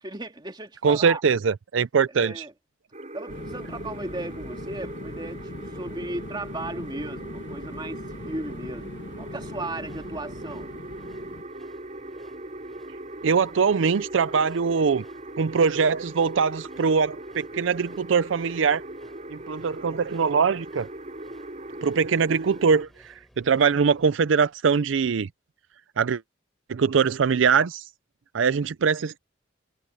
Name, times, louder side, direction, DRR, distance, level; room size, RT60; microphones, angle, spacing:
voice 1, 0.0-1.2 2.2-2.5 3.1-10.7, right 2 dB, 25° right, 2.5 m, -36 dB
voice 2, 0.8-2.5 13.2-15.0 15.4-18.8 19.3-20.9 21.8-25.3 26.0-26.2 26.7-27.8 28.3-29.2, right 6 dB, 80° right, 0.5 m, -22 dB
sound 1, 2.9-22.8, right 1 dB, 40° right, 5.4 m, -40 dB
sound 2, 3.3-11.4, left 2 dB, 65° left, 1.4 m, -41 dB
sound 3, 9.5-24.0, equal, ahead, 5.3 m, -57 dB
head